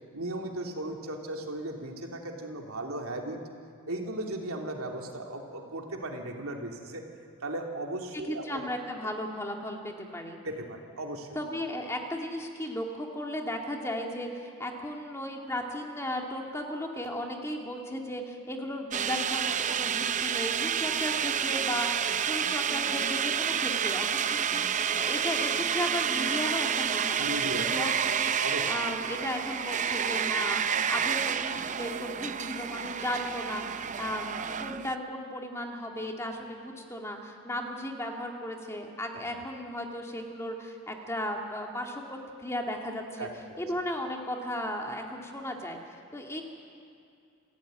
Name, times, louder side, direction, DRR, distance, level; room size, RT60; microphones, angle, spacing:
voice 1, 0.1-3.4 3.9-7.1 7.4-8.6 9.0-9.1 10.4-11.3 27.2-27.9 28.4-28.9 33.8-33.9 43.2-43.6, right 1 dB, 75° right, 1 dB, 2.9 m, -36 dB
voice 2, 8.3-10.4 11.3-28.3 28.7-43.3 43.6-45.8 46.1-46.4, left 1 dB, 15° left, 1 dB, 2.1 m, -35 dB
sound 1, 18.9-34.9, right 7 dB, 35° right, 0.6 m, -29 dB
28.5 x 14.5 x 9.4 m, 2.4 s
head